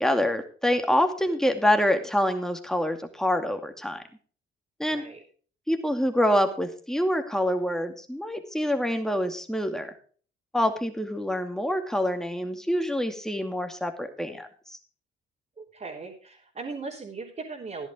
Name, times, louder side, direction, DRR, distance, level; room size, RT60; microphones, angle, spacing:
voice 1, 0.0-4.0 4.8-5.0 5.7-9.9 10.5-14.8, equal, ahead, 6 dB, 2.3 m, -26 dB
voice 2, 15.6-17.9, right 4 dB, 40° right, -4 dB, 3.6 m, -38 dB
14.5 x 11.0 x 3.6 m, 0.42 s
cardioid pair, 90°, 20 cm